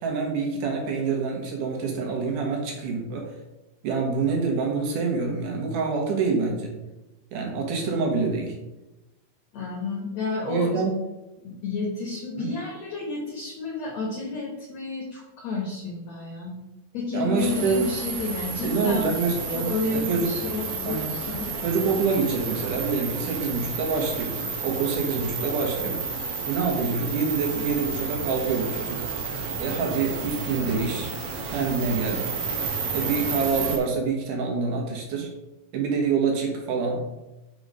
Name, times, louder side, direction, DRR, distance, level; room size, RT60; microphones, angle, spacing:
voice 1, 0.0-3.3 3.8-6.7 7.3-8.6 10.5-10.9 12.4-12.5 17.1-17.8 18.6-20.3 20.8-21.1 21.6-24.4 24.6-26.0 26.5-29.0 29.6-31.1 31.4-32.2 32.9-35.3 35.7-37.0, right 4 dB, 65° right, 1 dB, 2.6 m, -26 dB
voice 2, 9.5-10.8 11.4-16.5 16.9-19.1 19.5-21.5, left 3 dB, 60° left, -2 dB, 2.1 m, -31 dB
sound 1, 17.4-33.8, right 5 dB, 80° right, 1.3 m, -31 dB
6.3 x 4.9 x 5.3 m, 0.99 s
omnidirectional pair, 4.5 m